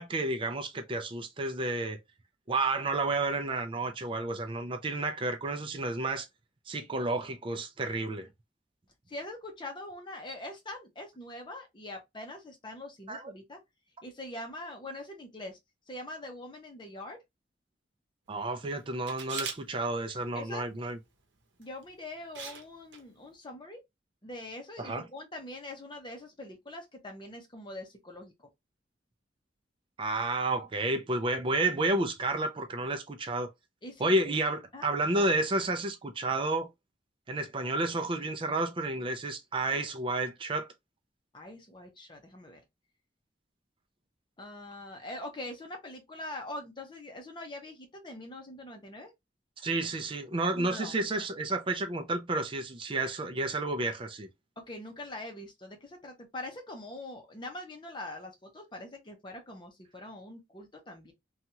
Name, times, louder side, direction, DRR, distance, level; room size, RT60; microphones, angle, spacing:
voice 1, 0.0-2.0 2.5-6.3 6.7-8.3 13.1-13.3 18.3-21.0 24.8-25.0 30.0-33.5 34.0-36.7 37.3-40.7 49.6-54.3, right 2 dB, 30° right, 0.4 m, -31 dB
voice 2, 9.1-13.6 14.0-15.6 15.9-17.2 20.3-20.6 21.6-23.8 24.2-28.3 33.8-34.1 34.7-34.9 41.3-42.6 44.4-49.1 50.5-50.9 54.6-61.1, left 1 dB, 25° left, 0.7 m, -43 dB
Camera, 19.1-19.6 21.6-21.8 22.4-22.6 22.9-23.0, right 6 dB, 85° right, 0.8 m, -38 dB
2.8 x 2.3 x 2.8 m
head